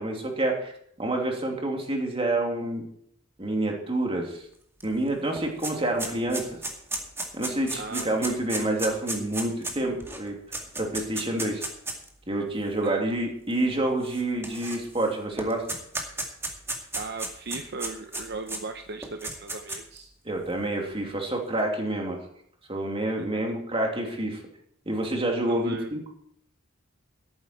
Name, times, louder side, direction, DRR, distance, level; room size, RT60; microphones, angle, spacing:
voice 1, 0.0-2.8 3.4-4.4 4.8-6.5 7.3-10.4 10.8-11.6 12.3-15.6 20.2-22.2 22.7-24.4 24.9-26.0, right 1 dB, 30° right, 1 dB, 2.8 m, -28 dB
sound 1, 4.8-4.9 5.1-12.1 12.9-13.0 14.0-15.1 15.4-18.6 19.0-20.0, right 2 dB, 10° right, 2.2 m, -33 dB
voice 2, 7.7-8.4 9.9-10.2 12.8-13.0 16.9-20.1 23.2-23.4 25.4-25.9, right 3 dB, 55° right, 6 dB, 0.9 m, -37 dB
13.5 x 12.0 x 4.5 m, 0.68 s
head